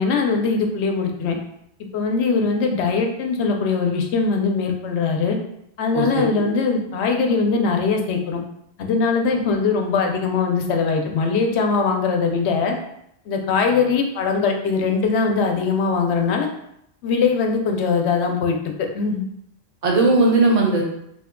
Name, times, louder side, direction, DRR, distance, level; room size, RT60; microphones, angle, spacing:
voice 1, 0.0-1.4 1.9-5.4 5.8-8.4 8.8-12.8 13.3-16.5 17.0-18.6 18.9-19.3, left 4 dB, 90° left, 3 dB, 0.8 m, -21 dB
voice 2, 5.9-6.4 19.8-20.8, right 2 dB, 45° right, -1 dB, 0.7 m, -18 dB
2.7 x 2.2 x 3.6 m, 0.76 s
omnidirectional pair, 1.1 m